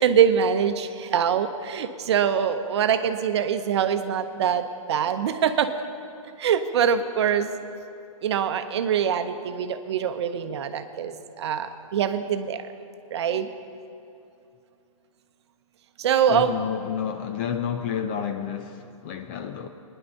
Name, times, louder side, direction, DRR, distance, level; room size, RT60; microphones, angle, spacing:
voice 1, 0.0-5.7 6.4-7.5 8.2-12.7 13.1-13.5 16.0-16.7, right 8 dB, 50° right, 0.8 m, -24 dB
voice 2, 16.3-19.7, left 8 dB, 20° left, 0.3 m, -30 dB
19.5 x 10.0 x 4.0 m
hypercardioid pair, 150°, 18 cm